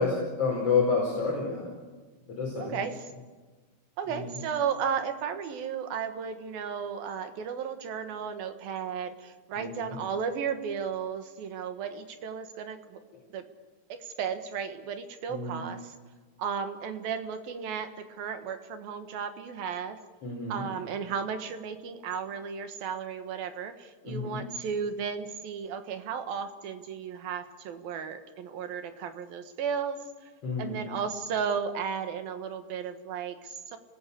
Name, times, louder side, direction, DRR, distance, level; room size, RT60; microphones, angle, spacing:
voice 1, 0.0-1.7 2.3-2.8 4.1-4.3 9.6-10.0 15.3-15.6 20.2-20.6 24.0-24.4 30.4-30.9, left 4 dB, 40° left, -2 dB, 5.5 m, -29 dB
voice 2, 2.6-3.0 4.0-13.0 13.3-13.5 13.9-15.9 16.4-20.0 20.5-30.0 30.6-33.8, right 7 dB, 70° right, 8 dB, 3.2 m, -34 dB
29.0 x 20.0 x 8.5 m, 1.3 s
omnidirectional pair, 4.5 m